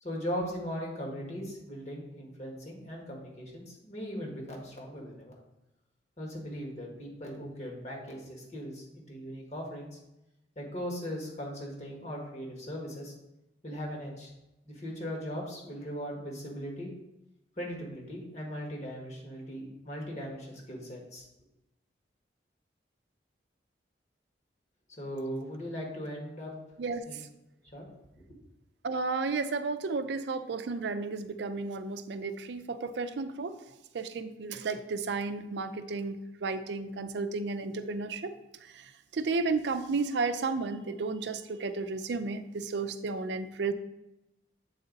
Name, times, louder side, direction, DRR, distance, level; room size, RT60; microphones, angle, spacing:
voice 1, 0.0-5.4 6.2-10.0 10.5-13.1 13.6-14.3 14.6-16.9 17.6-21.2 25.0-26.5 27.1-27.2 27.6-27.8, equal, 40° left, -1 dB, 1.5 m, -39 dB
voice 2, 26.8-27.3 28.8-33.6 33.9-38.3 38.7-43.7, right 4 dB, 70° right, 11 dB, 0.4 m, -33 dB
7.7 x 4.0 x 3.9 m, 0.92 s
head